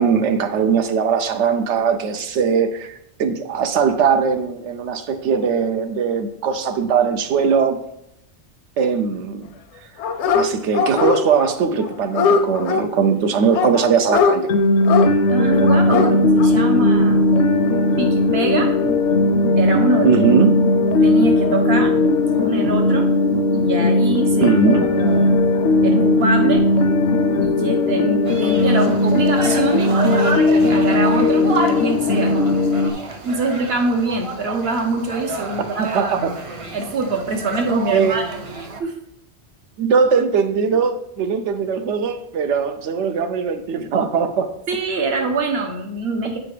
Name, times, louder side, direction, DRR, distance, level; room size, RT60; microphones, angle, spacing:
voice 1, 0.0-7.8 8.8-9.5 10.3-14.5 20.0-20.6 24.4-24.8 35.8-36.3 37.9-38.2 39.8-44.5, right 6 dB, 85° right, 1.0 m, -20 dB
Dog, 10.0-10.5 10.7-11.5 11.8-12.8 13.5-14.4 14.8-15.1 15.7-16.1 16.4-16.5, left 6 dB, 80° left, 0.9 m, -19 dB
sound 1, 14.5-32.9, left 2 dB, 60° left, 0.5 m, -17 dB
voice 2, 15.3-17.3 18.0-18.7 19.6-20.1 21.0-22.0 22.3-23.1 23.5-25.4 25.8-26.7 27.4-32.3 33.2-36.4 36.7-38.4 38.8-39.0 44.7-46.4, right 3 dB, 65° right, 1.2 m, -24 dB
sound 2, 28.2-38.8, right 3 dB, 40° right, 0.5 m, -30 dB
7.5 x 4.6 x 3.3 m
omnidirectional pair, 1.2 m